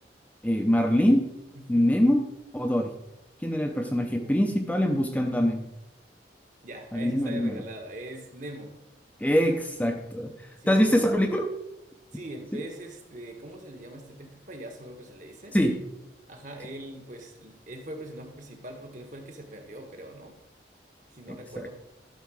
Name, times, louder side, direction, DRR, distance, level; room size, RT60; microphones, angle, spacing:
voice 1, 0.4-1.3 1.7-2.3 2.5-2.9 3.4-5.7 6.9-7.6 9.2-10.3 10.7-11.5 12.5-12.6 15.5-15.8 21.6-21.7, equal, 10° left, 3 dB, 0.7 m, -24 dB
voice 2, 6.6-8.8 10.6-11.3 12.1-15.6 16.3-20.3 21.1-21.7, right 1 dB, 45° right, 4 dB, 1.4 m, -42 dB
12.0 x 4.6 x 6.3 m, 0.88 s
head